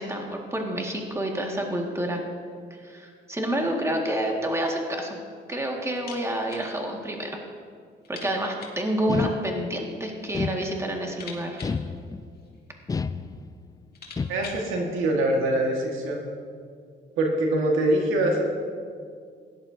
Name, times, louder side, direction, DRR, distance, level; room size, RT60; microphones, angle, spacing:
voice 1, 0.0-2.2 2.8-5.2 5.5-7.3 8.1-11.6, right 1 dB, 15° right, 0 dB, 1.9 m, -28 dB
sound 1, 5.9-6.7 7.0-7.1 7.4-7.5 8.0-8.9 9.8-10.4 10.7-12.7 13.4-13.5 13.8-14.7, left 4 dB, 50° left, 2.1 m, -45 dB
sound 2, 9.1-9.9 10.3-11.1 11.6-12.4 12.9-13.7 14.2-14.8, left 4 dB, 20° left, 0.3 m, -31 dB
voice 2, 14.3-16.3 17.2-18.4, right 1 dB, 90° right, 0 dB, 1.7 m, -24 dB
17.0 x 11.0 x 2.8 m, 2.1 s
cardioid pair, 90°, 20 cm